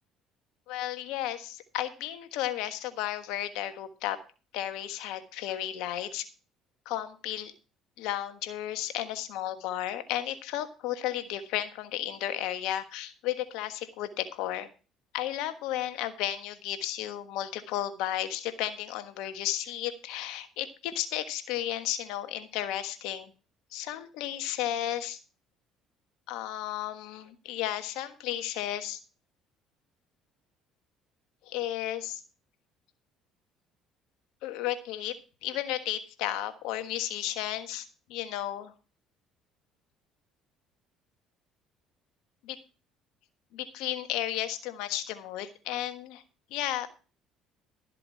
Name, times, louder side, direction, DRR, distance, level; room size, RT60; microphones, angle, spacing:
voice 1, 0.7-4.2 4.5-6.2 6.8-7.5 8.0-14.7 15.1-23.3 23.7-25.2 26.3-29.0 31.4-32.2 34.4-35.1 35.4-38.7 42.4-42.6 43.5-46.2 46.5-46.9, left 12 dB, 75° left, 9 dB, 1.3 m, -33 dB
13.0 x 7.6 x 4.6 m, 0.34 s
supercardioid pair, 70°, 0 cm